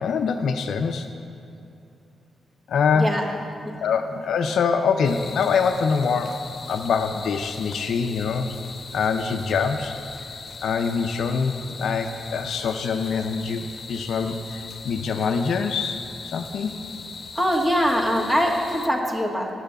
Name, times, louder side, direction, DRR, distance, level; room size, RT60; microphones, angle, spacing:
voice 1, 0.0-1.1 2.7-3.1 3.8-8.6 8.9-9.9 10.6-11.5 11.8-16.8, left 5 dB, 70° left, 5 dB, 0.4 m, -24 dB
voice 2, 2.9-3.3 17.4-19.5, equal, 20° right, 0 dB, 1.9 m, -22 dB
sound 1, 5.0-18.9, left 4 dB, 50° left, 0.9 m, -40 dB
9.0 x 6.6 x 7.7 m, 2.6 s
supercardioid pair, 45°, 0 cm